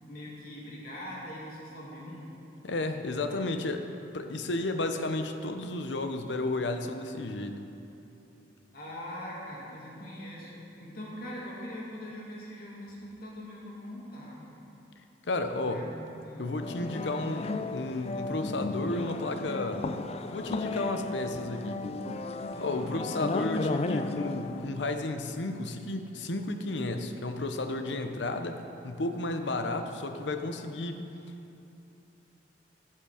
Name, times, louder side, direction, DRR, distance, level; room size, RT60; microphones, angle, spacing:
voice 1, 0.1-2.3 8.7-14.4 15.6-15.8 16.2-16.6 22.5-23.1, left 1 dB, 55° left, -6 dB, 2.4 m, -42 dB
voice 2, 2.6-3.9 4.1-7.6 15.2-15.9 16.4-19.9 20.2-21.8 22.6-31.0, left 2 dB, 80° left, 7 dB, 0.8 m, -32 dB
sound 1, 16.6-24.7, left 3 dB, 35° left, 0.4 m, -34 dB
17.0 x 5.8 x 5.0 m, 2.8 s
head